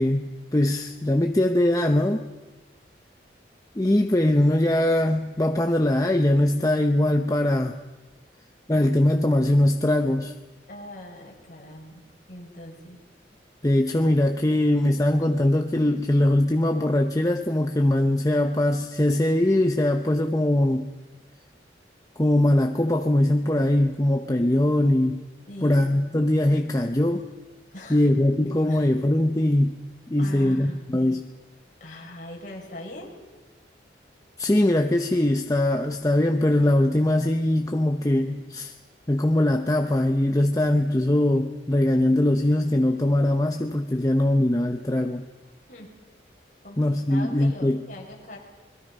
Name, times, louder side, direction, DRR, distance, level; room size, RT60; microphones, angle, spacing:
voice 1, 0.0-2.2 3.8-7.8 8.7-10.3 13.6-20.9 22.2-25.2 25.6-27.3 27.9-29.8 30.1-31.3 34.4-38.7 39.1-45.3 46.8-47.8, left 1 dB, 20° left, 4 dB, 0.8 m, -21 dB
voice 2, 10.7-12.0 12.3-13.0 25.5-25.9 27.7-28.1 28.7-28.9 30.2-30.8 31.8-33.1 45.7-45.9 46.6-48.4, left 1 dB, 45° left, -2 dB, 5.9 m, -41 dB
28.0 x 22.0 x 5.4 m, 1.2 s
head